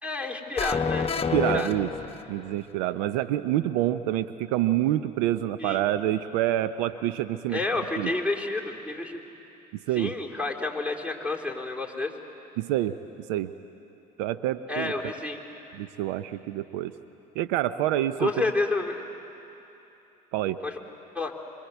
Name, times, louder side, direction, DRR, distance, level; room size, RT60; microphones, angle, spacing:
voice 1, 0.0-1.1 1.5-1.7 5.6-5.8 7.5-9.2 10.0-12.1 14.7-15.4 18.2-19.0 20.6-20.8 21.1-21.3, left 3 dB, 5° right, -1 dB, 3.8 m, -29 dB
sound 1, 0.6-2.6, left 5 dB, 30° left, 1.1 m, -28 dB
voice 2, 1.3-1.9 2.3-7.6 8.0-8.1 9.9-10.1 12.6-13.0 13.3-13.5 14.2-14.9 15.7-16.9 17.4-18.3 20.3-20.6, right 13 dB, 75° right, 12 dB, 0.7 m, -27 dB
26.0 x 23.5 x 8.1 m, 2.9 s
hypercardioid pair, 70°, 21 cm